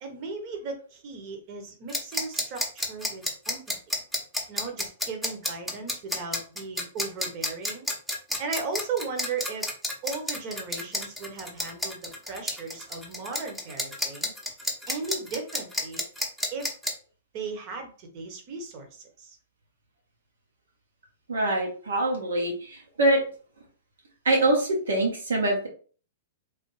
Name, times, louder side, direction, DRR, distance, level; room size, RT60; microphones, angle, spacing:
voice 1, 0.0-3.8 4.5-7.8 8.4-9.7 10.0-14.3 14.9-16.0 16.5-16.7 17.3-19.4, right 4 dB, 45° right, 4 dB, 1.0 m, -36 dB
sound 1, 1.9-16.9, left 1 dB, ahead, 0.7 m, -30 dB
voice 2, 21.3-23.2 24.2-25.7, right 1 dB, 85° right, -1 dB, 1.1 m, -24 dB
3.3 x 2.1 x 3.2 m, 0.41 s
hypercardioid pair, 120°, 0 cm